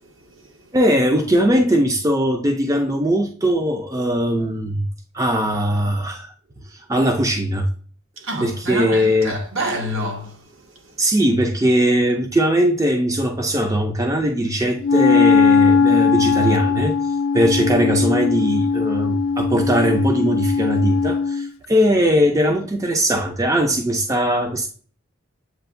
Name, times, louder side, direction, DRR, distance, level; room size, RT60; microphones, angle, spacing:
voice 1, 0.0-0.7 8.2-11.0, right 1 dB, 65° right, 0.9 m, -29 dB
voice 2, 0.7-4.9 5.1-6.3 6.7-7.7 8.4-9.4 11.0-16.9 17.3-24.7, equal, 15° right, 0.4 m, -20 dB
Wind instrument woodwind instrument, 14.8-21.5, left 5 dB, 70° left, 0.3 m, -19 dB
7.8 x 2.7 x 2.5 m
head